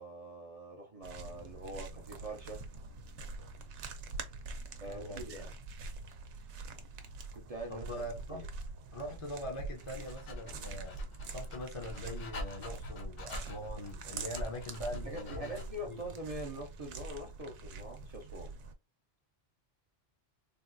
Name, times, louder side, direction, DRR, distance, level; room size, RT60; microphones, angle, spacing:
voice 1, 0.0-2.6 4.8-5.5 7.3-8.0 8.3-8.5 14.9-18.5, right 1 dB, 45° right, 0.5 m, -44 dB
Footsteps sand and marble, 1.0-18.7, right 3 dB, 85° right, 0.9 m, -45 dB
voice 2, 4.8-5.3 7.7-8.4 8.9-11.0 11.3-15.6 15.9-16.0, left 1 dB, 35° left, 0.5 m, -42 dB
Dog, 9.8-15.9, left 1 dB, 55° left, 0.9 m, -45 dB
3.6 x 2.3 x 2.5 m
omnidirectional pair, 1.2 m